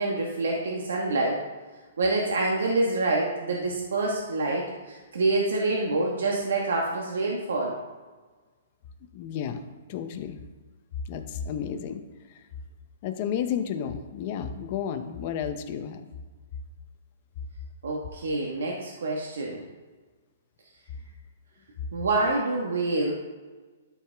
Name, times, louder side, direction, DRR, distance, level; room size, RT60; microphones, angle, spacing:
voice 1, 0.0-1.4 2.0-7.7 17.8-19.6 21.9-23.1, right 2 dB, 85° right, -2 dB, 1.3 m, -26 dB
voice 2, 9.1-9.6 9.9-10.4 11.1-12.0 13.0-16.0, left 8 dB, 35° left, 8 dB, 0.7 m, -32 dB
12.5 x 4.9 x 3.5 m, 1.3 s
hypercardioid pair, 165°, 0 cm